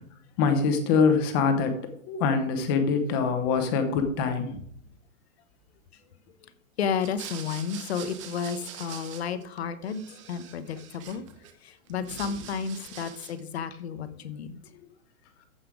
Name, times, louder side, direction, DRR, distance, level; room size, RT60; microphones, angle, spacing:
voice 1, 0.4-1.8 2.1-4.6 12.0-12.1, left 5 dB, 15° left, 0.8 m, -24 dB
voice 2, 6.8-11.2 11.6-14.5, left 6 dB, 45° left, 1.1 m, -32 dB
sound 1, 6.9-9.6 9.8-11.5 11.9-13.5, right 9 dB, 20° right, 0.9 m, -44 dB
14.5 x 5.8 x 4.9 m
hypercardioid pair, 175°, 43 cm